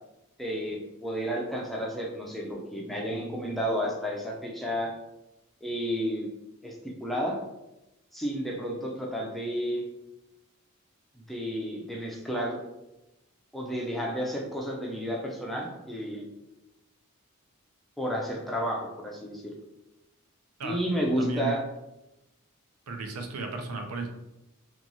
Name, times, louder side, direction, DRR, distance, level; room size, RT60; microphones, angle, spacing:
voice 1, 0.4-4.9 5.6-6.3 6.6-6.8 7.0-7.4 8.1-9.8 11.3-12.6 13.5-16.3 18.0-19.4 20.6-21.6, equal, ahead, -2 dB, 0.3 m, -31 dB
voice 2, 21.2-21.5 22.9-24.1, right 3 dB, 80° right, 4 dB, 0.5 m, -34 dB
3.0 x 2.2 x 2.6 m, 0.94 s
head